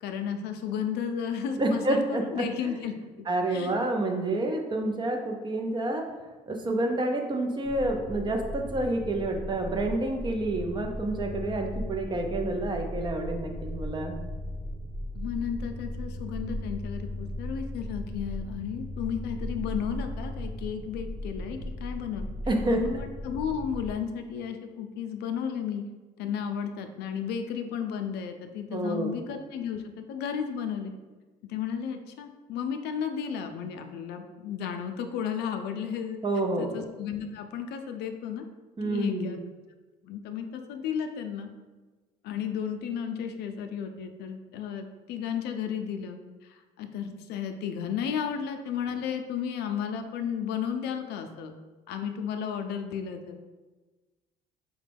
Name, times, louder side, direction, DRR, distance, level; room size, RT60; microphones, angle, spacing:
voice 1, 0.0-2.9 3.5-3.7 15.1-22.2 22.7-25.8 26.2-29.8 30.1-30.9 31.4-36.2 36.6-38.4 38.8-39.4 40.0-41.5 42.2-51.5 51.9-53.4, left 7 dB, 75° left, 6 dB, 0.4 m, -33 dB
voice 2, 1.6-2.4 3.3-6.0 6.5-14.2 22.5-22.8 28.7-29.1 36.2-36.7 38.8-39.4, right 2 dB, 25° right, 3 dB, 0.5 m, -28 dB
sound 1, 7.6-23.9, left 1 dB, 75° right, 1.4 m, -37 dB
5.0 x 2.2 x 3.4 m, 1.3 s
cardioid pair, 110°, 17 cm